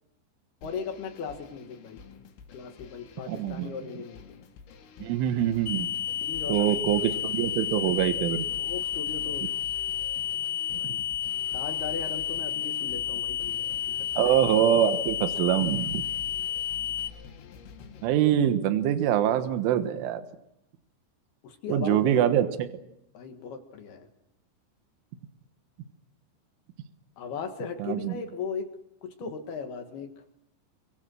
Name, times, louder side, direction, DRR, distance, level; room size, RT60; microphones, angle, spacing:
sound 1, 0.6-18.1, left 5 dB, 85° left, 4.8 m, -48 dB
voice 1, 0.6-2.0 2.5-4.3 6.2-6.8 8.6-9.5 10.8-11.1 11.5-14.2 21.4-22.2 23.1-24.1 27.2-28.7 29.0-30.1, left 6 dB, 60° left, 5 dB, 3.1 m, -37 dB
voice 2, 3.3-3.7 5.0-5.9 6.5-8.5 14.2-16.0 18.0-20.2 21.7-22.5 27.8-28.2, right 11 dB, 75° right, 9 dB, 3.8 m, -24 dB
sound 2, 5.7-17.1, left 10 dB, 40° left, 2.6 m, -31 dB
27.0 x 23.5 x 6.4 m, 0.82 s
omnidirectional pair, 5.7 m